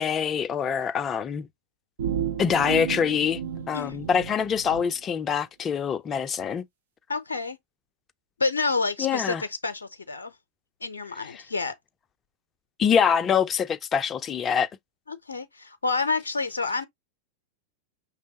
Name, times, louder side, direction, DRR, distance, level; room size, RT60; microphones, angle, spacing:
voice 1, 0.0-1.5 2.4-3.4 3.7-6.6 9.0-9.4 12.8-14.7, left 7 dB, 25° left, 0.5 m, -24 dB
sound 1, 2.0-4.8, right 8 dB, 60° right, 0.8 m, -32 dB
voice 2, 3.7-4.1 7.1-7.6 8.4-10.3 10.8-11.7 15.1-16.9, left 3 dB, 75° left, 0.6 m, -29 dB
5.4 x 3.3 x 2.8 m
figure-of-eight pair, 90°, 0 cm